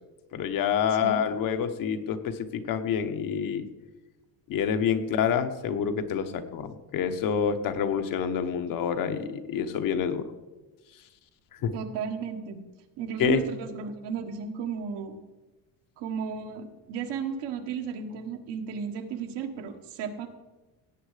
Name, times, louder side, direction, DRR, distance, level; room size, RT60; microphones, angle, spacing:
voice 1, 0.3-3.7 4.5-10.2 11.6-11.7 13.2-13.4, left 7 dB, 50° left, 8 dB, 1.1 m, -27 dB
voice 2, 0.9-1.3 11.7-12.6 13.0-15.2 16.0-20.3, right 6 dB, 70° right, 6 dB, 1.6 m, -34 dB
17.5 x 8.5 x 5.0 m, 1.1 s
cardioid pair, 170°, 43 cm